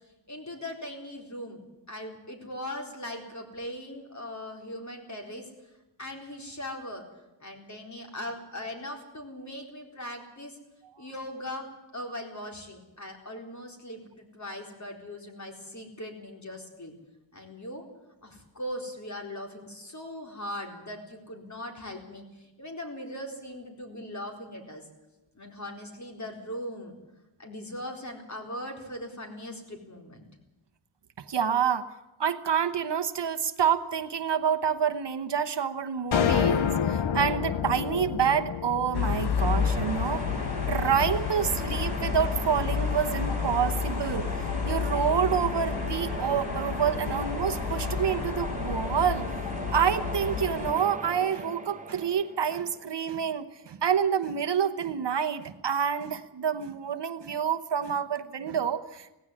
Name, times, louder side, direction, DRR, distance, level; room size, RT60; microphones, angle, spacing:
voice 1, 0.3-1.6 1.9-5.5 6.0-7.0 7.4-10.6 11.0-16.9 17.3-17.8 18.2-24.8 25.3-26.9 27.4-30.3, left 1 dB, 35° left, 2 dB, 4.2 m, -39 dB
voice 2, 31.2-31.9 32.2-40.2 40.7-44.3 44.6-49.3 49.7-59.1, right 7 dB, 60° right, 9 dB, 1.1 m, -28 dB
sound 1, 36.1-40.5, left 8 dB, 70° left, 1.0 m, -28 dB
sound 2, 38.9-50.7, left 7 dB, 55° left, 1.1 m, -31 dB
sound 3, 39.4-53.2, right 2 dB, 15° right, 1.3 m, -38 dB
17.5 x 16.0 x 9.7 m, 0.99 s
wide cardioid pair, 125°, 48 cm